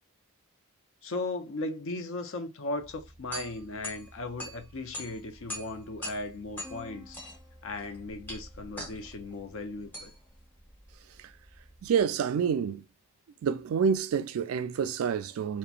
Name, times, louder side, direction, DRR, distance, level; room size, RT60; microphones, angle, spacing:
voice 1, 1.0-7.2 7.6-10.1, left 2 dB, 65° left, 0.6 m, -37 dB
sound 1, 2.8-12.0, equal, 10° left, 0.9 m, -44 dB
sound 2, 6.6-10.4, left 3 dB, 25° left, 1.3 m, -55 dB
voice 2, 11.8-12.8 13.4-15.6, right 7 dB, 75° right, 0.3 m, -28 dB
2.8 x 2.2 x 2.4 m
head